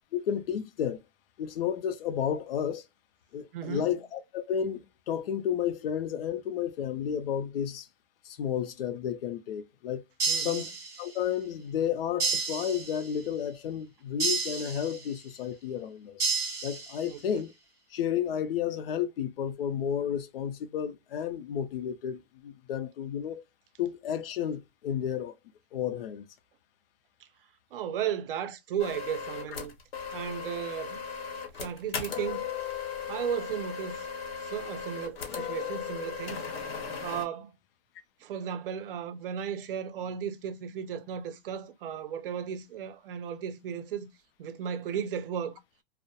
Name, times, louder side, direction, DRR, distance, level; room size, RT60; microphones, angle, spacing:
voice 1, 0.1-1.0 1.4-2.8 3.3-7.9 8.2-10.0 10.4-10.7 11.0-16.2 16.6-17.5 17.9-23.4 23.8-25.3 25.7-26.3, left 9 dB, 70° left, 0.5 m, -32 dB
voice 2, 3.5-3.9 10.3-10.7 17.0-17.4 27.7-29.7 30.1-31.0 31.5-32.4 33.1-34.1 34.4-36.4 37.0-37.6 38.2-44.1 44.4-45.6, right 8 dB, 65° right, 0.5 m, -35 dB
sound 1, 10.2-11.3 12.2-13.3 14.2-15.3 16.2-17.2, right 4 dB, 10° right, 0.6 m, -31 dB
sound 2, 28.8-37.2, left 6 dB, 90° left, 0.9 m, -37 dB
2.2 x 2.0 x 2.7 m
hypercardioid pair, 165°, 30 cm